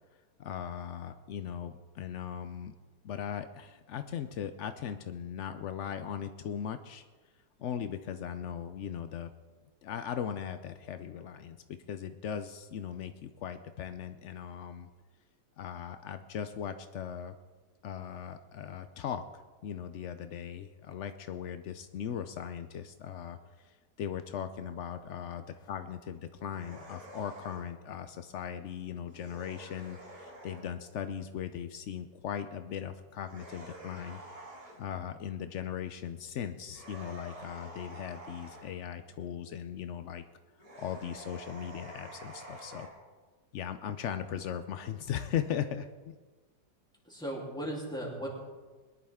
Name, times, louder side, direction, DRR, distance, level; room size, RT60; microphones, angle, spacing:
voice 1, 0.4-2.7 3.0-7.0 7.6-9.3 9.8-14.9 15.6-17.4 17.8-23.4 23.6-34.2 34.8-40.2 40.8-42.9 43.5-46.2, left 9 dB, 85° left, 10 dB, 0.6 m, -38 dB
sound 1, 26.5-27.7 29.0-30.7 33.2-34.8 36.7-38.7 40.6-42.9, right 1 dB, 55° right, 3.8 m, -48 dB
voice 2, 47.0-48.3, right 1 dB, ahead, -4 dB, 3.1 m, -37 dB
22.0 x 11.0 x 3.6 m, 1.4 s
omnidirectional pair, 1.9 m